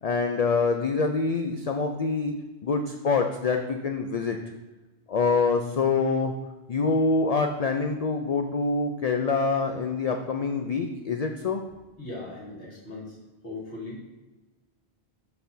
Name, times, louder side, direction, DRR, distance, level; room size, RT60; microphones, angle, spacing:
voice 1, 0.0-2.4 2.6-4.4 5.1-6.3 6.7-11.6, left 4 dB, 55° left, 4 dB, 0.4 m, -25 dB
voice 2, 12.0-13.2 13.4-14.0, left 2 dB, 90° left, -6 dB, 2.4 m, -38 dB
12.0 x 4.2 x 2.7 m, 1.2 s
omnidirectional pair, 1.1 m